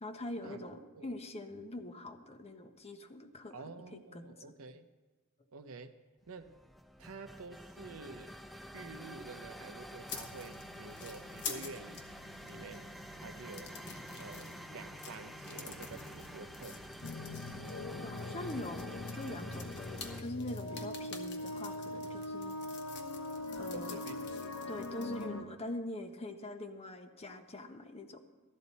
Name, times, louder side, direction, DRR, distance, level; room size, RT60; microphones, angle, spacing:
voice 1, 0.0-4.5 18.0-22.5 23.6-24.0 24.7-28.2, left 1 dB, 30° left, 7 dB, 0.8 m, -43 dB
voice 2, 3.5-4.8 5.5-5.9 6.3-6.6 7.0-8.3 8.7-12.9 13.2-13.8 14.2-16.8 23.7-24.5, right 3 dB, 70° right, 9 dB, 0.7 m, -49 dB
sound 1, 6.3-20.2, equal, ahead, 0.4 m, -48 dB
sound 2, 10.1-25.3, left 5 dB, 55° left, 1.2 m, -49 dB
sound 3, 17.0-25.4, left 2 dB, 70° left, 0.9 m, -41 dB
14.0 x 12.0 x 4.1 m, 1.2 s
head